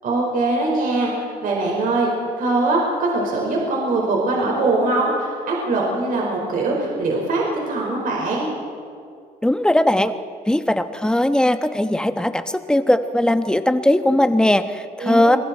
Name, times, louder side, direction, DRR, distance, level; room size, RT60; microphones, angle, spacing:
voice 1, 0.0-2.1 2.4-8.5 15.0-15.4, right 2 dB, 55° right, -2 dB, 5.2 m, -22 dB
voice 2, 9.4-10.1 10.5-15.4, left 1 dB, 5° left, 9 dB, 1.1 m, -19 dB
29.5 x 22.5 x 4.5 m, 2.3 s
cardioid pair, 110°, 17 cm